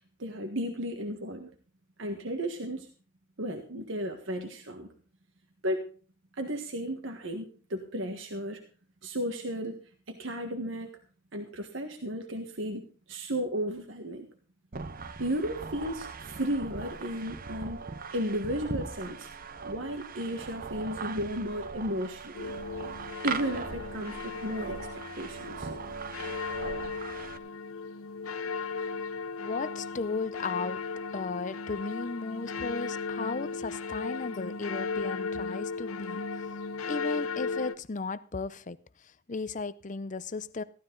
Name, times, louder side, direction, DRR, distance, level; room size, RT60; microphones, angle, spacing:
voice 1, 0.2-1.5 2.0-2.9 3.4-4.9 5.6-5.8 6.3-8.6 9.0-9.8 10.1-10.9 11.3-14.3 15.2-17.8 18.1-19.3 19.6-22.5 23.2-24.8 25.2-25.7, equal, 65° right, 4 dB, 1.5 m, -34 dB
sound 1, 14.7-27.4, right 4 dB, 40° right, 0.7 m, -40 dB
sound 2, 22.3-37.8, left 4 dB, 85° left, 0.8 m, -36 dB
voice 2, 29.4-30.8 31.1-36.2 36.9-38.8 39.3-40.6, left 4 dB, 35° left, 16 dB, 0.6 m, -35 dB
15.0 x 12.5 x 3.9 m, 0.40 s
head